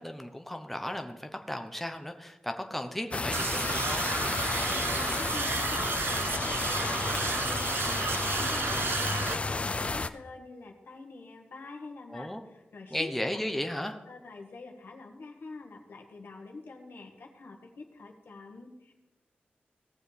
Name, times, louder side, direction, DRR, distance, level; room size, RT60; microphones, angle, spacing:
voice 1, 0.0-4.1 12.1-12.4 12.9-14.0, left 1 dB, 5° left, 5 dB, 0.8 m, -35 dB
sound 1, 3.1-10.1, left 3 dB, 35° left, 0.5 m, -31 dB
sound 2, 3.3-9.4, right 5 dB, 75° right, 0.6 m, -33 dB
voice 2, 4.8-13.4 14.1-18.9, left 3 dB, 75° left, 2 dB, 1.5 m, -46 dB
18.0 x 7.1 x 3.4 m, 1.1 s
wide cardioid pair, 75°, 4 cm